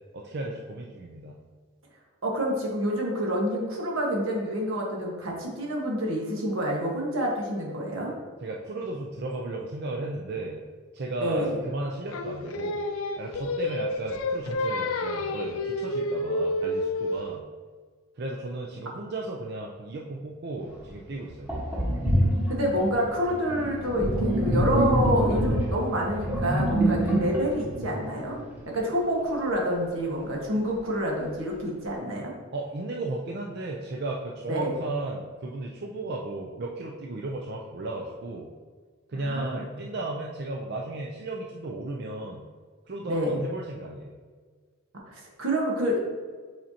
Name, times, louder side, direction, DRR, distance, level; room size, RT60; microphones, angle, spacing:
voice 1, 0.1-1.4 8.4-10.6 10.9-12.8 13.2-17.5 18.2-21.5 32.5-38.5 39.1-42.5 42.9-44.1, right 2 dB, 50° right, -1 dB, 0.5 m, -35 dB
voice 2, 2.2-8.1 11.2-11.6 22.5-28.4 28.7-32.3 34.5-34.8 39.1-39.6 43.1-43.4 45.1-46.0, equal, 80° right, -1 dB, 1.5 m, -28 dB
Singing, 12.1-17.3, left 1 dB, 90° left, 0.5 m, -29 dB
Sink (filling or washing), 20.8-20.9 21.5-28.8, right 1 dB, 10° right, 1.2 m, -26 dB
7.6 x 4.4 x 2.8 m, 1.5 s
head